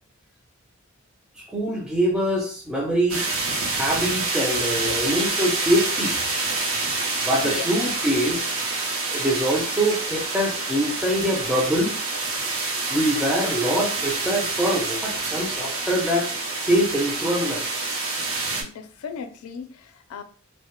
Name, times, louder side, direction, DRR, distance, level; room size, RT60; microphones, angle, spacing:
voice 1, 1.5-3.4 3.7-6.1 7.2-8.6 9.1-12.0 12.9-16.3 16.7-17.6, equal, 5° right, 0.4 m, -24 dB
sound 1, 3.1-18.6, right 3 dB, 70° right, 0.5 m, -27 dB
voice 2, 4.5-5.2 7.4-7.6 18.6-20.2, left 6 dB, 85° left, 0.4 m, -37 dB
2.1 x 2.0 x 2.9 m
head